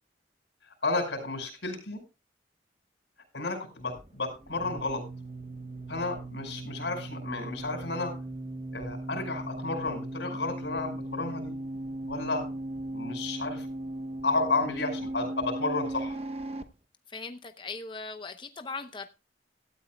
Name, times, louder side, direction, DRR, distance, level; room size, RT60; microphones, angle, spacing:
voice 1, 0.8-2.0 3.3-5.0 5.9-8.1 8.7-11.6 12.1-12.5 12.9-13.7 14.2-16.2, left 3 dB, 80° left, 5.3 m, -32 dB
sound 1, 3.8-16.6, right 1 dB, 35° right, 0.9 m, -38 dB
voice 2, 17.1-19.1, left 4 dB, 25° left, 0.7 m, -39 dB
17.5 x 12.5 x 2.3 m
head